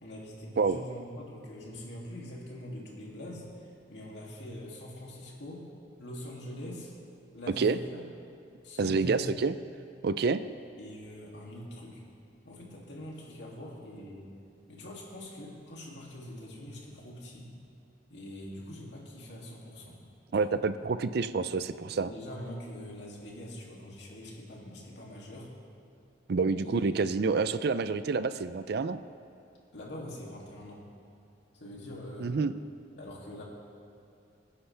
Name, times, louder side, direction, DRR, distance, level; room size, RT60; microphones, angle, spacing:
voice 1, 0.0-5.6 6.0-6.9 7.3-8.0 8.6-9.4 10.8-12.0 12.4-14.3 14.7-17.5 18.1-20.0 20.3-20.5 21.4-21.5 21.9-25.5 26.6-27.2 29.7-30.8 31.5-32.3 32.9-33.4, left 1 dB, 70° left, -3 dB, 2.7 m, -43 dB
voice 2, 8.8-9.5 10.0-10.4 20.3-22.1 26.3-29.0 32.2-32.5, right 4 dB, 60° right, 13 dB, 0.4 m, -28 dB
22.5 x 10.0 x 3.4 m, 2.5 s
head